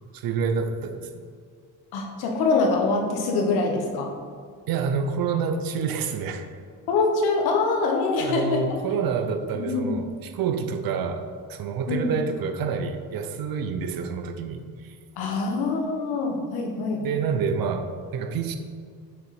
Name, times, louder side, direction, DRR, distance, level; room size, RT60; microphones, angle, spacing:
voice 1, 0.1-1.2 4.7-6.5 8.2-15.0 17.0-18.6, right 5 dB, 70° right, 7 dB, 0.7 m, -28 dB
voice 2, 1.9-4.1 6.9-8.6 9.5-10.0 11.9-12.1 15.2-17.0, left 3 dB, 90° left, 2 dB, 1.1 m, -24 dB
6.3 x 3.9 x 4.8 m, 2.1 s
cardioid pair, 85°, 37 cm